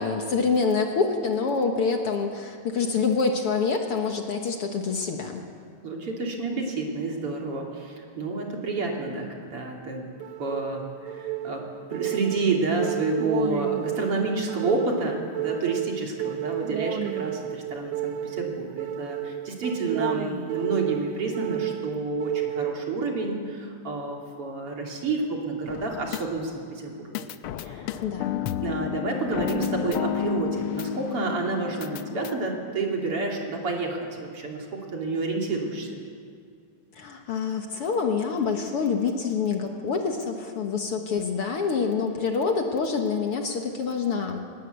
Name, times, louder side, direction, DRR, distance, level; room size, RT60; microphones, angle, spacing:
voice 1, 0.0-5.4 28.0-28.4 37.0-44.4, left 5 dB, 55° left, 3 dB, 2.1 m, -26 dB
voice 2, 5.8-10.0 10.4-11.6 11.9-27.3 27.6-28.3 28.6-35.9, right 3 dB, 50° right, 0 dB, 3.7 m, -29 dB
sound 1, 10.2-23.2, right 12 dB, 85° right, 2.2 m, -32 dB
sound 2, 25.7-26.7 27.1-32.4, left 11 dB, 85° left, 1.2 m, -32 dB
21.0 x 19.5 x 8.3 m, 2.3 s
omnidirectional pair, 3.3 m